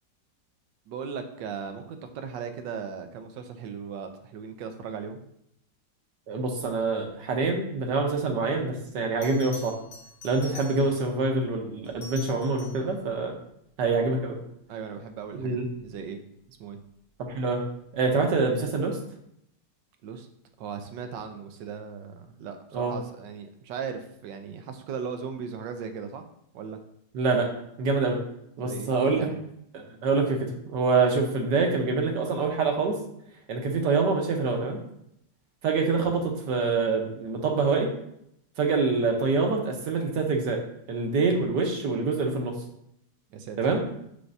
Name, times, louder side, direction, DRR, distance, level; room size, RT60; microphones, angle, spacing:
voice 1, 0.9-5.2 14.7-16.2 16.5-16.8 20.0-20.3 20.6-26.2 26.5-26.8 28.6-29.4 43.3-43.6, right 6 dB, 90° right, 7 dB, 1.4 m, -37 dB
voice 2, 6.3-9.8 10.2-13.4 13.8-14.4 15.3-15.7 17.2-17.6 17.9-19.0 22.7-22.9 27.1-27.5 27.8-28.2 28.6-29.3 29.7-33.0 33.5-34.8 35.6-37.9 38.6-40.6 40.9-42.6 43.6-43.8, right 4 dB, 75° right, 2 dB, 1.6 m, -25 dB
Bell, 9.2-11.2 11.8-12.9 15.6-15.9, left 3 dB, 45° left, 1.4 m, -45 dB
6.5 x 5.8 x 2.7 m, 0.74 s
omnidirectional pair, 1.9 m